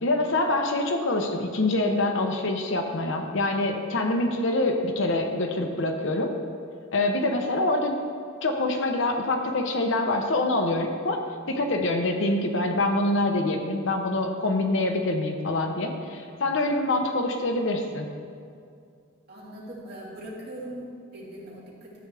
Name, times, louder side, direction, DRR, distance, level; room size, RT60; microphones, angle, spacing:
voice 1, 0.0-6.3 6.9-7.9 8.4-11.2 11.5-18.1, left 2 dB, 65° left, 4 dB, 0.9 m, -25 dB
voice 2, 19.3-22.1, right 1 dB, 50° right, -5 dB, 2.3 m, -40 dB
13.0 x 7.8 x 3.4 m, 2.3 s
head